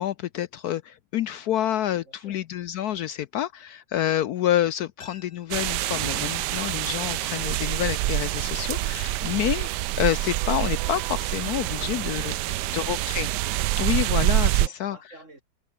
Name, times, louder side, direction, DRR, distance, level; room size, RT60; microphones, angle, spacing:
voice 1, 0.0-9.7 10.0-12.3 12.7-13.3 13.8-15.0, left 11 dB, 70° left, 1.1 m, -28 dB
voice 2, 2.1-2.4 11.7-13.2 14.6-15.4, right 2 dB, 45° right, 5.5 m, -50 dB
sound 1, 5.0-7.8 8.1-8.2, left 5 dB, 85° left, 3.1 m, -55 dB
sound 2, 5.5-14.7, right 16 dB, 80° right, 1.2 m, -26 dB
omnidirectional pair, 1.9 m